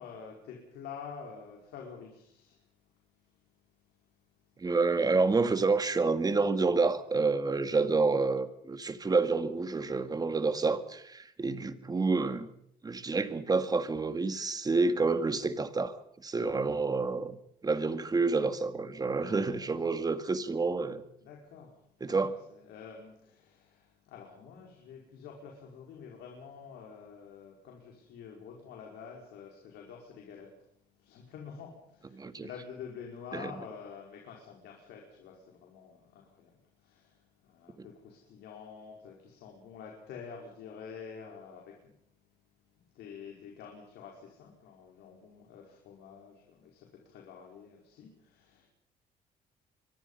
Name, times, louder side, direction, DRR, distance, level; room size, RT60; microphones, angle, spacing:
voice 1, 0.0-2.6 19.2-19.6 21.2-21.8 22.5-30.5 31.0-36.5 36.8-37.2 37.5-41.9 42.9-48.7, left 6 dB, 80° left, 5.0 m, -48 dB
voice 2, 4.6-12.5 12.8-16.0 16.2-17.4 17.6-21.0 22.0-22.3 32.1-32.5 33.3-33.5 37.8-37.9, right 4 dB, 20° right, 1.9 m, -28 dB
25.0 x 23.0 x 5.6 m
cardioid pair, 110°, 17 cm